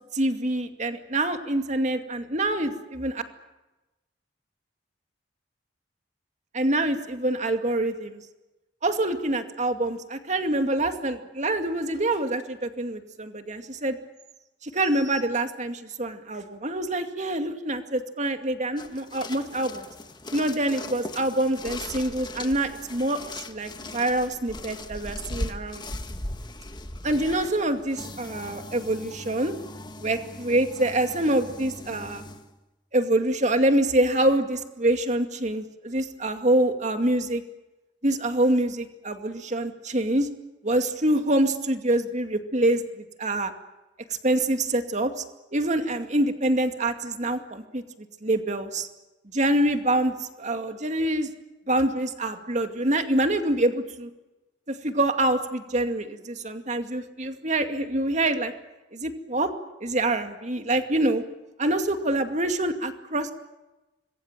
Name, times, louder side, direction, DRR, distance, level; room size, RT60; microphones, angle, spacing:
voice 1, 0.1-3.2 6.5-8.2 8.8-14.0 14.6-19.8 20.3-25.8 27.0-29.5 30.0-32.2 32.9-37.4 38.0-40.3 40.6-43.5 44.2-45.2 45.5-47.8 48.2-48.9 49.3-51.3 51.7-54.1 54.7-58.5 58.9-59.5 59.8-61.2 61.6-63.3, right 1 dB, 40° right, 6 dB, 2.4 m, -25 dB
sound 1, 18.8-32.5, left 2 dB, 25° left, 1.7 m, -39 dB
26.0 x 22.0 x 9.0 m, 1.0 s
head